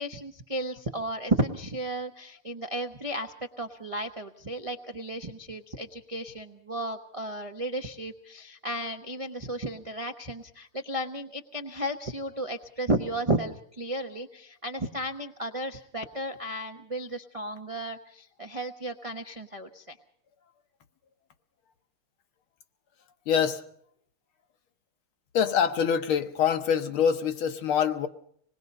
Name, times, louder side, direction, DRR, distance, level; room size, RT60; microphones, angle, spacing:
voice 1, 0.0-20.0, right 1 dB, 50° right, 5 dB, 0.4 m, -33 dB
voice 2, 23.3-23.6 25.3-28.1, left 7 dB, 75° left, 8 dB, 2.0 m, -25 dB
26.0 x 20.0 x 5.4 m, 0.64 s
omnidirectional pair, 2.4 m